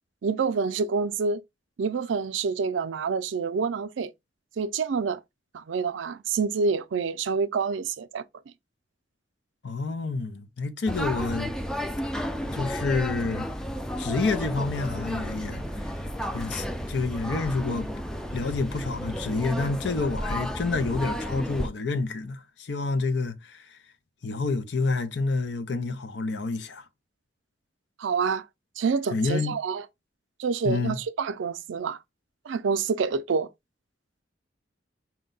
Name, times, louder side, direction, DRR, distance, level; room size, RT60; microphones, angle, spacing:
voice 1, 0.2-1.4 1.8-4.1 4.6-5.2 5.5-8.2 28.0-28.4 28.8-29.8 30.4-32.0 32.5-33.5, right 5 dB, 90° right, 0.4 m, -27 dB
voice 2, 9.6-11.5 12.5-13.5 14.0-15.9 16.3-17.9 18.3-23.8 24.2-26.8 29.1-29.6 30.6-31.0, left 3 dB, 65° left, 0.6 m, -28 dB
sound 1, 10.9-21.7, equal, 5° left, 0.3 m, -32 dB
4.4 x 2.2 x 3.8 m
head